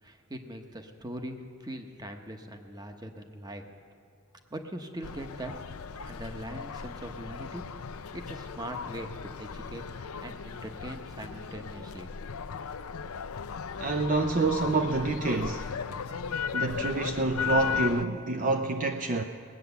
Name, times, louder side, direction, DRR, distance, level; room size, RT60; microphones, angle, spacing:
voice 1, 0.0-3.7 4.5-5.5 5.9-7.6 8.1-12.1, right 1 dB, 20° right, 5 dB, 1.0 m, -41 dB
sound 1, 5.0-18.1, left 6 dB, 75° left, 0.5 m, -36 dB
voice 2, 13.8-15.7 16.5-19.2, right 3 dB, 40° right, 5 dB, 0.6 m, -27 dB
19.5 x 9.2 x 7.0 m, 2.5 s
head